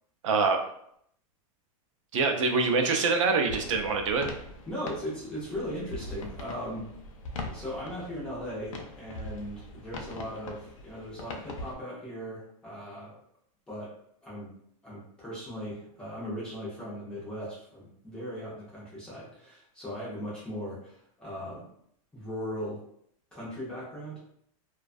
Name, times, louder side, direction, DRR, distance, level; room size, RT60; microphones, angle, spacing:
voice 1, 0.2-0.6 2.1-4.3, right 4 dB, 60° right, 4 dB, 0.4 m, -25 dB
sound 1, 3.5-11.7, left 2 dB, 60° left, 0.5 m, -42 dB
voice 2, 4.7-6.9 7.4-13.2 13.7-13.9 14.2-14.5 14.8-21.7 22.1-22.8 23.3-24.2, equal, 5° left, -8 dB, 0.3 m, -38 dB
2.3 x 2.2 x 2.4 m, 0.69 s
supercardioid pair, 175°, 19 cm